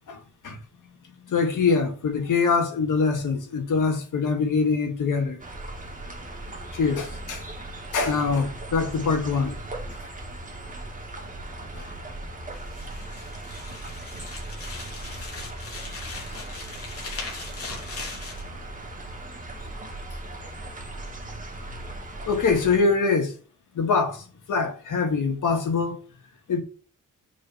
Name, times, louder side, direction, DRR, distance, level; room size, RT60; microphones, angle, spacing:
voice 1, 0.1-0.6 1.3-5.4 6.7-7.4 7.9-9.5 11.8-11.9 16.2-16.3 17.0-17.1 17.7-17.8 22.3-23.4 23.7-26.0 26.5-26.6, left 4 dB, 75° left, 2.0 m, -24 dB
sound 1, 5.4-22.8, right 1 dB, 25° right, 2.1 m, -38 dB
sound 2, 12.5-18.4, left 3 dB, 45° left, 3.2 m, -39 dB
7.2 x 4.5 x 5.8 m
wide cardioid pair, 155°, 31 cm